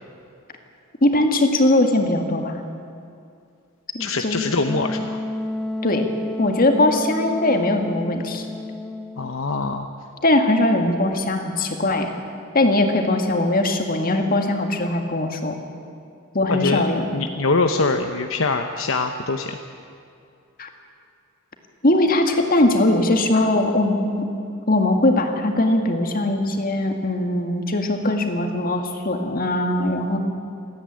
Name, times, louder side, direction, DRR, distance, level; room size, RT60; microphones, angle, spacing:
voice 1, 1.0-2.6 3.9-4.4 5.8-6.1 6.4-8.5 10.2-12.1 12.5-15.6 16.3-17.1 20.6-20.7 21.8-24.3 24.7-30.2, left 1 dB, 45° left, 4 dB, 2.0 m, -20 dB
voice 2, 4.0-5.2 9.2-9.9 16.5-16.8 17.1-19.6, left 3 dB, 70° left, 6 dB, 0.9 m, -23 dB
Wind instrument woodwind instrument, 4.6-9.5, left 1 dB, 5° left, 0.8 m, -30 dB
27.5 x 10.0 x 9.6 m, 2.5 s
head